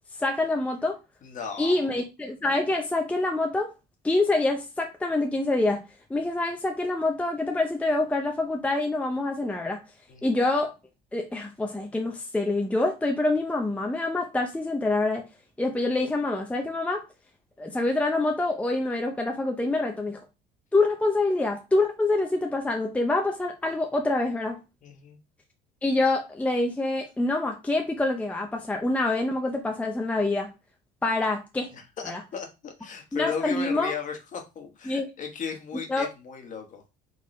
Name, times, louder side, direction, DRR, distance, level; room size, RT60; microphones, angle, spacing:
voice 1, 0.2-1.0 1.6-3.7 4.0-5.8 6.1-9.8 10.2-10.7 11.1-15.2 15.6-17.0 17.6-20.2 20.7-24.6 25.8-30.5 31.0-31.7 32.1-32.2 33.1-33.9 34.9-35.1 35.9-36.1, left 2 dB, 5° left, 0.6 m, -26 dB
voice 2, 1.2-1.9 10.1-10.4 24.8-25.2 31.7-36.8, left 6 dB, 45° left, 1.3 m, -36 dB
4.2 x 3.6 x 3.2 m
cardioid pair, 115°, 19 cm